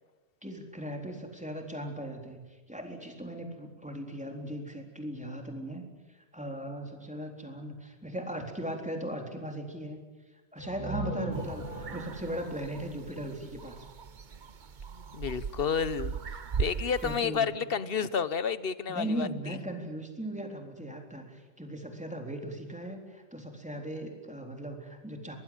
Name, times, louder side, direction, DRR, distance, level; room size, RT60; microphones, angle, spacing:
voice 1, 0.4-10.0 10.5-13.9 17.0-17.5 18.9-25.4, right 1 dB, 5° right, 3 dB, 3.8 m, -38 dB
sound 1, 10.6-14.3, right 3 dB, 10° left, 7.3 m, -39 dB
sound 2, 11.3-17.2, right 6 dB, 40° right, 0.9 m, -39 dB
voice 2, 15.1-19.6, left 6 dB, 50° left, 15 dB, 1.2 m, -31 dB
24.0 x 20.0 x 9.0 m, 1.2 s
omnidirectional pair, 1.4 m